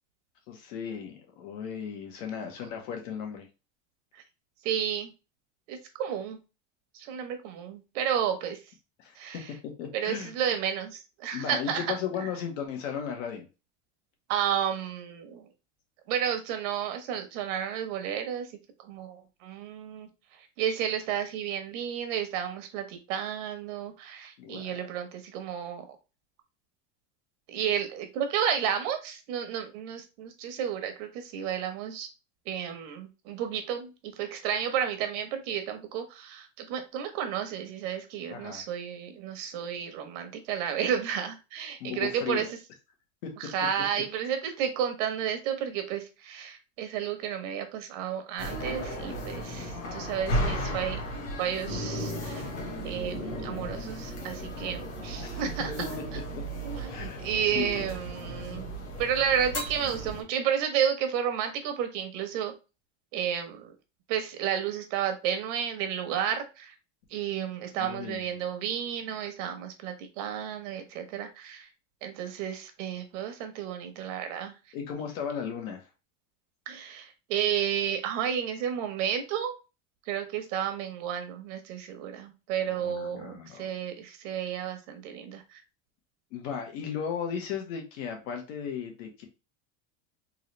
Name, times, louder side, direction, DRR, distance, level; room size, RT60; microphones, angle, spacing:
voice 1, 0.5-3.5 9.0-9.2 9.8-10.3 11.3-13.5 24.4-24.8 38.3-38.6 41.8-42.4 43.2-43.3 55.2-55.5 56.3-56.4 56.9-57.2 57.5-57.8 67.8-68.4 74.7-75.9 82.7-83.7 86.3-89.3, left 7 dB, 80° left, 3 dB, 1.5 m, -36 dB
voice 2, 4.6-5.1 5.7-6.4 6.9-8.6 9.2-9.5 9.9-12.0 14.3-15.5 16.1-18.5 18.8-20.1 20.6-26.0 27.5-32.1 32.5-42.5 43.4-51.0 51.4-52.5 52.8-55.7 56.6-58.7 59.0-62.5 63.1-63.7 64.1-66.7 67.1-71.7 72.0-74.5 76.7-79.5 80.1-85.6, right 9 dB, 70° right, 7 dB, 1.0 m, -32 dB
sound 1, 48.4-60.2, equal, 40° left, 1.4 m, -35 dB
3.9 x 2.6 x 3.1 m, 0.29 s
cardioid pair, 170°, 38 cm